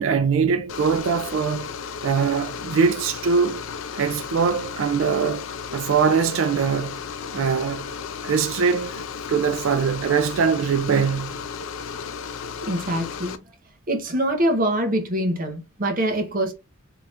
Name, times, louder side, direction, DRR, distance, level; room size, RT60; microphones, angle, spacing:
voice 1, 0.0-1.7 2.0-3.6 3.9-5.5 5.7-7.0 7.3-7.9 8.2-9.0 9.3-11.4, right 6 dB, 70° right, 0.4 m, -22 dB
sound 1, 0.7-13.4, left 6 dB, 70° left, 0.4 m, -34 dB
voice 2, 12.6-13.4 13.9-16.5, right 1 dB, 45° right, 0.9 m, -24 dB
3.4 x 2.8 x 2.4 m
head